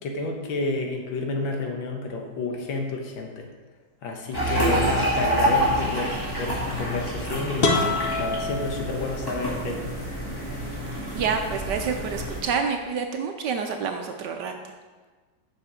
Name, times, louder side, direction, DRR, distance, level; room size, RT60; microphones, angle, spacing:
voice 1, 0.0-3.5 4.0-7.8 8.2-10.0, left 3 dB, 85° left, 2 dB, 1.9 m, -30 dB
sound 1, 4.3-12.4, equal, 10° left, 1.6 m, -27 dB
voice 2, 4.5-4.9 11.1-14.5, right 6 dB, 70° right, 5 dB, 1.1 m, -28 dB
sound 2, 7.6-9.5, left 3 dB, 60° left, 0.6 m, -26 dB
7.3 x 6.3 x 4.9 m, 1.3 s
omnidirectional pair, 2.1 m